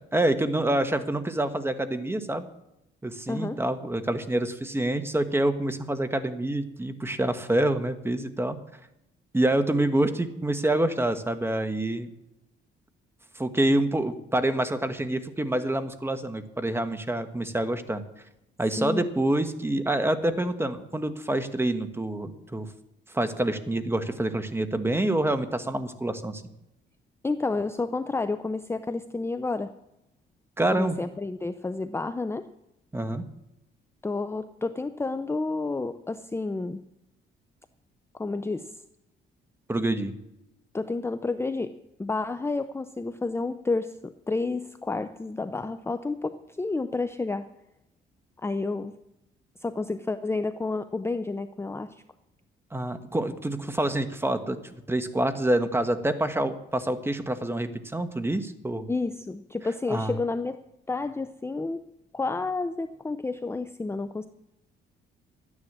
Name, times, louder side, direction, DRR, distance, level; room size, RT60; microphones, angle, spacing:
voice 1, 0.1-2.5 3.0-8.6 9.3-12.1 13.3-18.0 18.6-22.7 23.1-26.4 30.6-31.0 32.9-33.2 39.7-40.2 52.7-54.6 54.9-58.9 59.9-60.1, right 1 dB, 10° right, 9 dB, 1.3 m, -27 dB
voice 2, 3.3-3.6 18.8-19.1 27.2-29.7 30.7-32.5 34.0-36.8 38.1-38.8 40.7-47.5 48.4-48.9 49.6-52.0 58.9-60.6 60.9-61.9 62.1-64.3, left 3 dB, 10° left, 11 dB, 0.6 m, -30 dB
12.5 x 9.8 x 7.4 m, 0.87 s
cardioid pair, 90°, 20 cm